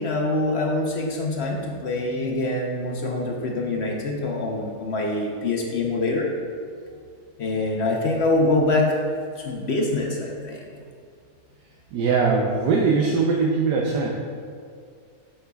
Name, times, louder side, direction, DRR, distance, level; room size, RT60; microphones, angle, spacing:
voice 1, 0.0-6.3 7.4-9.0 9.4-10.6, left 2 dB, 55° left, 0 dB, 0.8 m, -24 dB
voice 2, 11.9-14.1, right 4 dB, 90° right, -1 dB, 1.3 m, -21 dB
8.8 x 6.7 x 2.3 m, 2.2 s
omnidirectional pair, 1.8 m